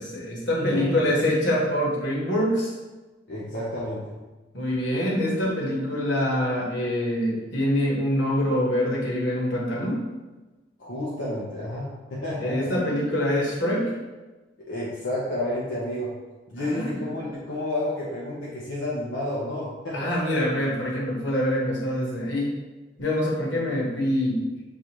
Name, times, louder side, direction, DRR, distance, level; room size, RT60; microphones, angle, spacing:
voice 1, 0.0-2.7 4.5-10.0 12.4-14.0 16.6-17.2 19.9-22.5 23.0-24.5, left 1 dB, 70° left, -4 dB, 1.3 m, -25 dB
voice 2, 0.5-1.3 3.3-4.2 10.8-12.7 14.6-16.2 16.5-20.3, left 1 dB, 90° left, -6 dB, 0.8 m, -31 dB
6.8 x 2.5 x 3.0 m, 1.2 s
head